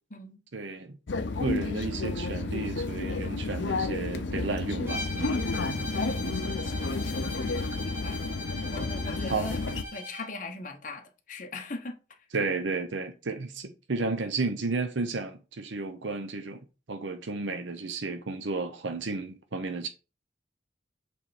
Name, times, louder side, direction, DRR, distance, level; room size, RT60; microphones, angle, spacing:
voice 1, 0.5-1.0 1.4-5.4 9.3-9.5 12.3-16.6 16.9-19.9, right 3 dB, 85° right, 0.8 m, -32 dB
sound 1, 1.1-9.8, left 3 dB, 80° left, 0.7 m, -31 dB
Bowed string instrument, 4.9-10.3, left 2 dB, 15° right, 1.9 m, -40 dB
Drum, 5.6-8.0, equal, 35° right, 1.5 m, -47 dB
voice 2, 6.0-6.6 7.8-8.2 8.7-9.6 9.9-12.0, left 2 dB, 45° left, 1.2 m, -39 dB
7.4 x 3.4 x 4.3 m
head